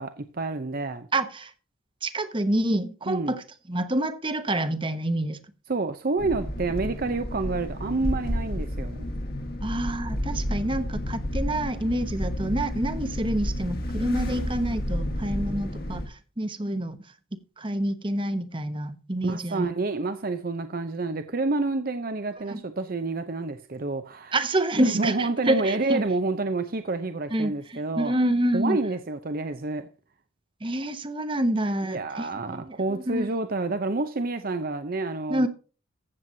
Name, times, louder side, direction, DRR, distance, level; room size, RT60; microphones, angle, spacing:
voice 1, 0.0-1.1 3.1-3.3 5.7-9.1 19.2-24.4 24.8-28.1 28.5-29.9 31.8-35.5, right 3 dB, 45° right, 0.7 m, -29 dB
voice 2, 1.1-1.5 2.0-5.4 9.6-17.0 17.3-19.7 22.5-22.6 24.3-26.0 27.3-28.8 30.6-33.3 35.3-35.5, right 1 dB, 25° right, 1.0 m, -27 dB
sound 1, 6.2-16.1, equal, 50° left, 1.7 m, -31 dB
15.5 x 7.8 x 2.7 m
head